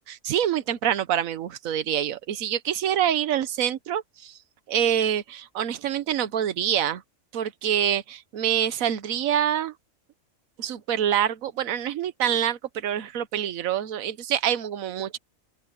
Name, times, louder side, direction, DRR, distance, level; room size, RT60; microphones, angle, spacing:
voice 1, 0.0-4.4 4.7-7.0 7.3-9.7 10.6-15.2, right 10 dB, 85° right, 1.3 m, -26 dB
open air
omnidirectional pair, 1.4 m